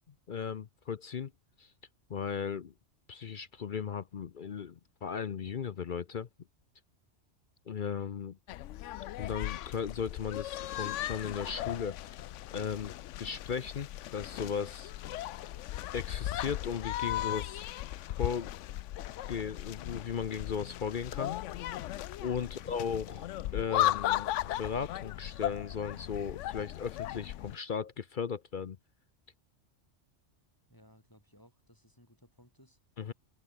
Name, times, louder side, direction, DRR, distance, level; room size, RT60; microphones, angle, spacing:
voice 1, 0.3-1.3 1.6-1.7 2.1-2.7 3.1-6.3 7.7-8.4 9.2-12.2 12.5-14.9 15.9-17.6 18.2-18.5 19.3-21.4 22.2-28.8 33.0-33.1, left 6 dB, 50° left, 0.8 m, -36 dB
sound 1, 8.5-27.6, left 14 dB, 80° left, 0.9 m, -37 dB
voice 2, 22.4-22.7 30.7-32.8, equal, 15° left, 7.1 m, -61 dB
omnidirectional pair, 1.2 m